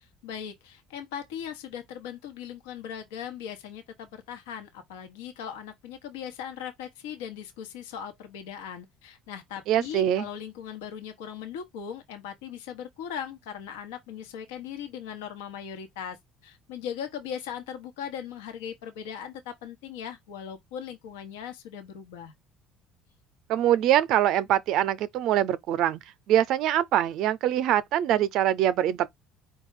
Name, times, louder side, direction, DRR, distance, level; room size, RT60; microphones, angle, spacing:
voice 1, 0.2-16.2 16.4-22.3, left 8 dB, 85° left, 1.0 m, -39 dB
voice 2, 9.7-10.3 23.5-29.1, right 12 dB, 65° right, 0.6 m, -24 dB
4.8 x 2.3 x 4.7 m
hypercardioid pair, 70°, 0 cm